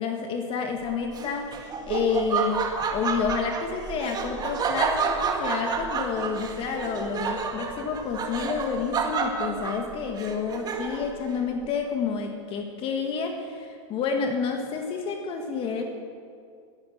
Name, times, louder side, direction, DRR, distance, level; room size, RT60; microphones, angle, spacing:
voice 1, 0.0-2.6 2.9-15.8, left 5 dB, 35° left, 3 dB, 1.8 m, -29 dB
Laughter, 1.1-11.2, right 5 dB, 25° right, 2.0 m, -29 dB
20.5 x 9.7 x 6.4 m, 2.3 s
hypercardioid pair, 125°, 16 cm